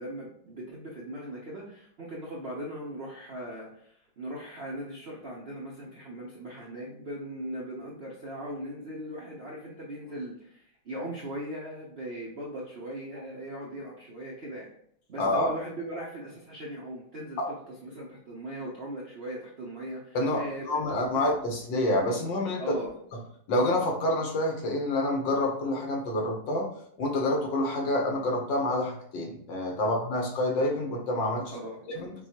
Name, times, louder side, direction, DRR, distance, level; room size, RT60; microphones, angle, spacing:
voice 1, 0.0-14.7 15.1-20.7 21.1-21.2 22.6-22.9 29.8-29.9 31.4-31.8, right 1 dB, 55° right, -4 dB, 0.6 m, -39 dB
voice 2, 15.2-15.5 17.4-17.5 20.1-22.6 23.5-26.7 27.0-31.5 31.9-32.1, left 1 dB, 75° left, 1 dB, 1.6 m, -27 dB
5.9 x 2.3 x 2.9 m, 0.67 s
omnidirectional pair, 2.0 m